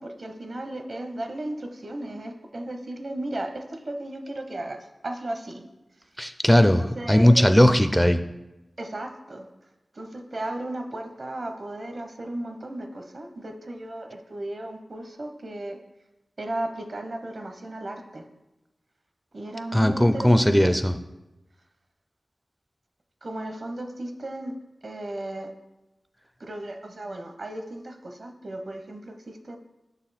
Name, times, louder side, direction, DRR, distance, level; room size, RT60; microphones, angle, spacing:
voice 1, 0.0-5.7 6.6-7.5 8.8-9.5 9.9-15.8 16.4-18.3 19.3-20.7 23.2-24.5 24.8-25.5 26.4-29.6, right 1 dB, 60° right, 5 dB, 0.7 m, -35 dB
voice 2, 6.2-8.2 19.7-20.9, equal, 5° left, 10 dB, 0.4 m, -18 dB
6.2 x 4.1 x 4.1 m, 0.99 s
cardioid pair, 40°, 0 cm